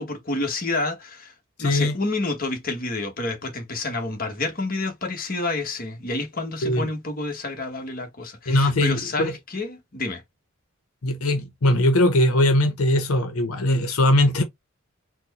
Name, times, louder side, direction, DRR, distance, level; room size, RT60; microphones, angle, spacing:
voice 1, 0.0-1.3 1.6-10.2, left 2 dB, 45° left, 1.2 m, -29 dB
voice 2, 1.6-1.9 6.6-6.9 8.5-9.3 11.0-14.4, left 1 dB, 90° left, 0.8 m, -20 dB
4.4 x 2.2 x 4.1 m
head